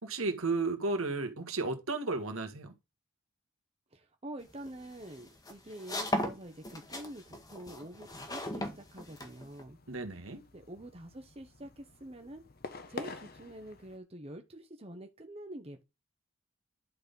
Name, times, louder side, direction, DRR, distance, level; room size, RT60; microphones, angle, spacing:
voice 1, 0.0-2.7 9.9-10.4, right 3 dB, 75° right, 1.7 m, -33 dB
voice 2, 3.9-9.8 10.5-12.4 12.9-15.8, right 1 dB, 30° right, 1.0 m, -46 dB
sound 1, 4.5-9.6, left 1 dB, 20° left, 1.3 m, -37 dB
sound 2, 8.1-14.0, left 3 dB, 45° left, 0.9 m, -49 dB
10.5 x 4.3 x 5.3 m
head